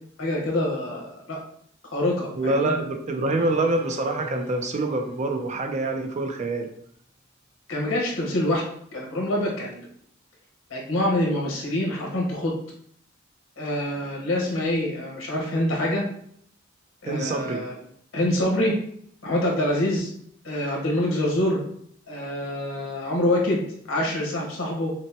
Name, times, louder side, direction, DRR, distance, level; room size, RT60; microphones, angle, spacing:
voice 1, 0.2-1.4 1.9-2.7 7.7-8.6 8.9-9.9 10.7-12.5 13.6-16.0 17.0-17.7 18.1-18.7 19.2-20.1 20.4-21.6 22.1-23.6 23.9-24.9, left 1 dB, 85° left, -2 dB, 1.3 m, -25 dB
voice 2, 2.4-6.7 17.1-17.6, right 2 dB, 35° right, 5 dB, 0.4 m, -26 dB
sound 1, 3.4-6.4, right 2 dB, 40° left, 1.6 m, -42 dB
5.9 x 2.1 x 2.9 m, 0.66 s
head